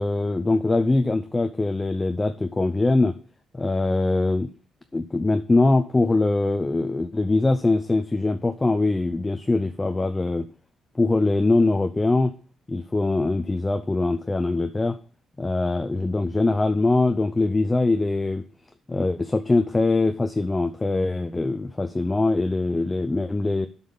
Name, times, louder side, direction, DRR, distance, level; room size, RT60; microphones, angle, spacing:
voice 1, 0.0-3.1 3.5-4.5 4.9-10.5 10.9-12.3 12.7-15.0 15.4-18.4 18.9-23.7, left 2 dB, 20° left, 8 dB, 0.6 m, -22 dB
7.6 x 5.5 x 5.5 m, 0.40 s
cardioid pair, 90°, 0 cm